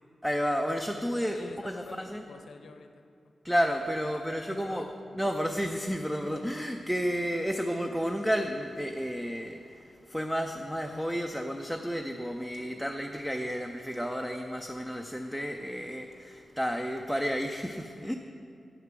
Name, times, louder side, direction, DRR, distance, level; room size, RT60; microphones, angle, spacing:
voice 1, 0.2-2.3 3.4-4.9 5.1-18.1, equal, ahead, 4 dB, 0.4 m, -31 dB
voice 2, 1.3-3.3 4.0-4.9 7.2-7.4, left 4 dB, 70° left, 7 dB, 0.7 m, -49 dB
9.1 x 8.3 x 6.1 m, 2.4 s
wide cardioid pair, 170°, 0 cm